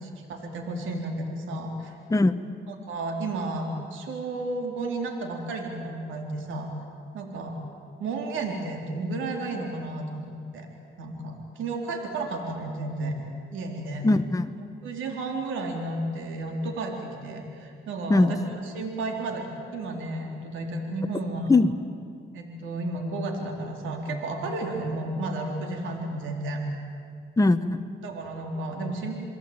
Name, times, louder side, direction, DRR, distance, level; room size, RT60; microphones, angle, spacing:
voice 1, 0.0-2.0 2.9-6.7 7.1-7.6 8.0-10.7 11.0-13.2 13.5-14.1 14.8-18.4 18.7-19.4 19.7-21.5 22.3-26.6 28.0-29.2, right 2 dB, 80° right, 2 dB, 3.9 m, -32 dB
voice 2, 2.1-2.5 14.0-14.6 18.1-18.3 21.5-21.9 27.4-27.8, left 2 dB, 15° left, 8 dB, 1.1 m, -21 dB
29.5 x 21.5 x 9.0 m, 2.2 s
cardioid pair, 90°, 20 cm